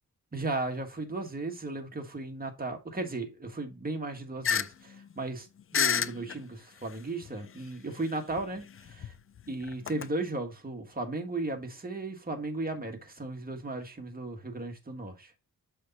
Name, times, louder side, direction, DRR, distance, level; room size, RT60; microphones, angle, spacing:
voice 1, 0.3-5.5 5.7-9.1 9.5-15.3, right 2 dB, 25° right, 1.5 m, -35 dB
sound 1, 4.4-4.7 5.0-5.1 5.7-6.4 7.2-7.3 8.3-10.1, left 7 dB, 35° left, 0.4 m, -29 dB
6.6 x 5.2 x 3.9 m
wide cardioid pair, 110°, 38 cm